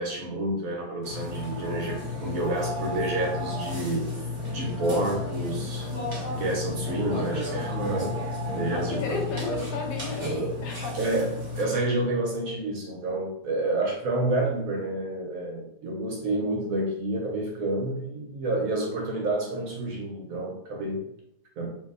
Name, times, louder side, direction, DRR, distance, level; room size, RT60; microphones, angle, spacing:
voice 1, 0.0-5.9 6.3-9.2 10.9-21.0 21.6-21.7, right 2 dB, 70° right, 0 dB, 0.9 m, -29 dB
Burping eructation, 1.0-11.6, left 2 dB, 50° right, 0.3 m, -32 dB
voice 2, 8.6-11.0, left 4 dB, 80° left, 2 dB, 1.2 m, -34 dB
2.8 x 2.6 x 2.4 m, 0.77 s
omnidirectional pair, 1.8 m